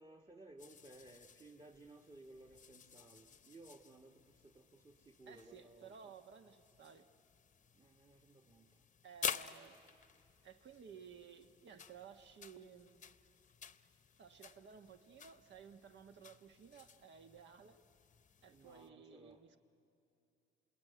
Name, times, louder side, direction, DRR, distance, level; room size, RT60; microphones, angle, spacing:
voice 1, 0.0-6.1 7.7-8.9 18.5-19.4, right 2 dB, 25° right, 2 dB, 1.4 m, -59 dB
sound 1, 0.6-18.9, left 7 dB, 40° left, 0.8 m, -51 dB
voice 2, 5.3-7.1 9.0-9.8 10.4-13.0 14.2-17.8 18.4-19.6, right 6 dB, 65° right, 8 dB, 1.3 m, -56 dB
27.5 x 20.5 x 9.4 m, 2.7 s
cardioid pair, 90°, 20 cm